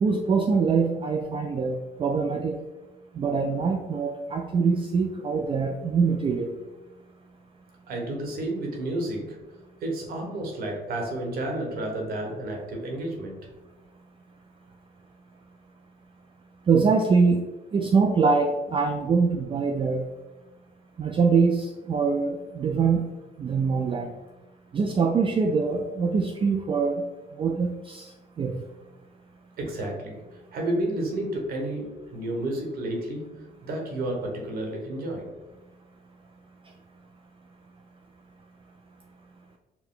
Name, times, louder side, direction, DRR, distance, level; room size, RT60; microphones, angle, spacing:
voice 1, 0.0-2.6 3.1-6.6 16.7-17.5 17.7-20.1 21.0-23.0 23.4-24.1 24.7-27.0 27.4-28.1 28.4-28.6, right 5 dB, 35° right, 3 dB, 0.4 m, -24 dB
voice 2, 7.9-9.4 9.8-13.4 29.6-35.4, right 1 dB, 70° right, 1 dB, 1.1 m, -31 dB
4.6 x 2.2 x 3.7 m, 1.1 s
cardioid pair, 95°, 16 cm